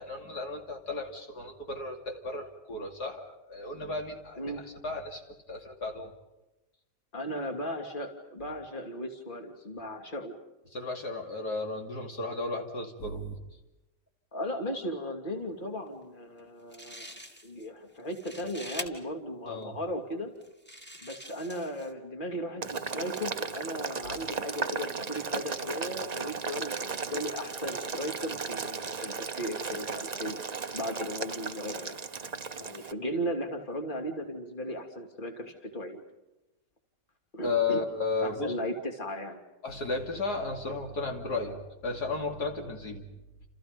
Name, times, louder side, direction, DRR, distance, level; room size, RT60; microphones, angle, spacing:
voice 1, 0.0-4.6 4.8-6.1 10.7-13.3 19.4-19.7 37.4-38.5 39.6-41.6 41.8-43.1, left 3 dB, 70° left, 3 dB, 3.3 m, -34 dB
voice 2, 7.1-10.3 14.3-17.1 17.4-20.3 21.0-30.4 30.7-32.0 32.6-36.0 37.3-37.8 38.2-39.4 41.5-41.6, equal, 30° left, 3 dB, 3.2 m, -36 dB
sound 1, 16.4-16.5 16.7-17.7 18.0-18.9 19.6-19.7 20.4-21.9, equal, 5° left, 2.1 m, -44 dB
Boiling, 22.6-32.9, right 5 dB, 35° right, 0.7 m, -36 dB
30.0 x 29.0 x 5.4 m, 1.0 s
omnidirectional pair, 1.8 m